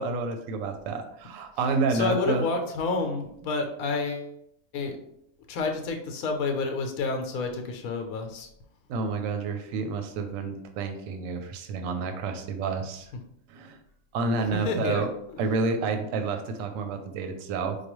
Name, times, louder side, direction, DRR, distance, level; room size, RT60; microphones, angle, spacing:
voice 1, 0.0-2.4 8.9-13.1 13.5-13.8 14.1-15.1 15.4-17.8, right 4 dB, 70° right, 6 dB, 0.9 m, -29 dB
voice 2, 1.9-4.3 4.7-5.0 5.5-8.5 14.5-15.4, left 3 dB, 75° left, 4 dB, 1.1 m, -29 dB
4.7 x 2.3 x 3.0 m, 0.74 s
omnidirectional pair, 1.6 m